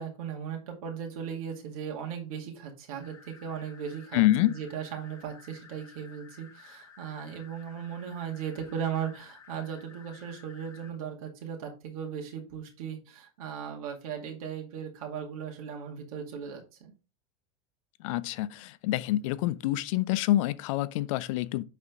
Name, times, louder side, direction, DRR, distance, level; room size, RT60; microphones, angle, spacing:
voice 1, 0.0-16.9, right 8 dB, 70° right, 2.3 m, -37 dB
sound 1, 3.0-10.9, left 5 dB, 15° left, 4.1 m, -54 dB
voice 2, 4.1-4.5 18.0-21.6, left 15 dB, 60° left, 0.6 m, -27 dB
9.4 x 4.2 x 3.6 m
supercardioid pair, 135°, 19 cm